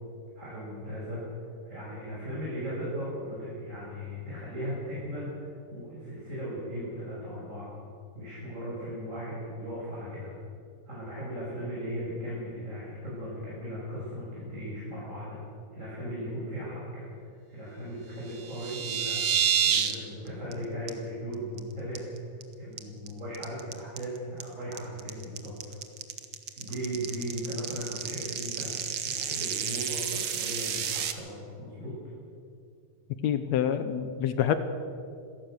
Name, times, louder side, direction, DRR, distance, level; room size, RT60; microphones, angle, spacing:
voice 1, 0.3-1.2 1.6-7.7 8.1-10.3 10.9-15.4 15.7-25.5 26.5-28.7 29.0-31.9, equal, 20° right, -7 dB, 6.4 m, -37 dB
sound 1, 18.3-19.9 20.3-20.5 20.9-21.0 21.3-21.6 21.9-22.4 22.8-31.1, right 8 dB, 70° right, 1.2 m, -30 dB
voice 2, 33.2-34.6, left 9 dB, 75° left, 10 dB, 1.7 m, -26 dB
26.0 x 17.5 x 6.6 m, 2.4 s
omnidirectional pair, 4.2 m